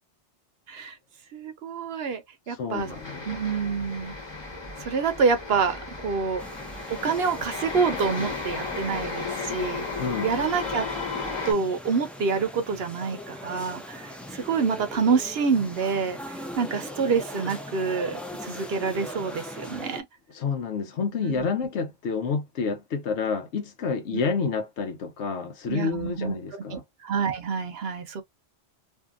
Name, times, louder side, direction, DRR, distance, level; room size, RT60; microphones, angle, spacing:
voice 1, 1.3-2.9 3.3-4.1 4.8-6.4 7.0-9.9 10.2-10.9 11.4-20.0 21.2-21.5 24.1-24.2 25.7-28.2, right 5 dB, 65° right, 0.9 m, -27 dB
voice 2, 2.6-3.3 10.0-10.4 20.3-26.8, left 5 dB, 85° left, 1.1 m, -29 dB
sound 1, 2.8-11.5, left 4 dB, 25° left, 1.0 m, -34 dB
sound 2, 6.4-20.0, equal, ahead, 0.4 m, -40 dB
2.7 x 2.6 x 2.4 m
omnidirectional pair, 1.1 m